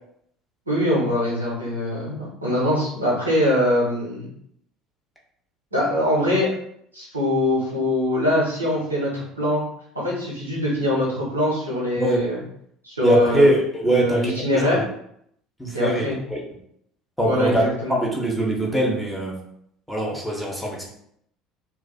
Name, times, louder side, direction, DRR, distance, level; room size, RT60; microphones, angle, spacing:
voice 1, 0.7-4.3 5.7-6.5 6.9-9.6 9.9-12.4 12.8-13.5 13.8-14.8 15.7-16.2 17.2-18.0, left 1 dB, 85° right, -5 dB, 0.8 m, -23 dB
voice 2, 13.0-14.8 15.6-16.4 17.2-17.6 17.9-19.4 19.9-20.9, right 1 dB, ahead, -3 dB, 0.7 m, -22 dB
2.4 x 2.3 x 2.2 m, 0.70 s
figure-of-eight pair, 60°, 0 cm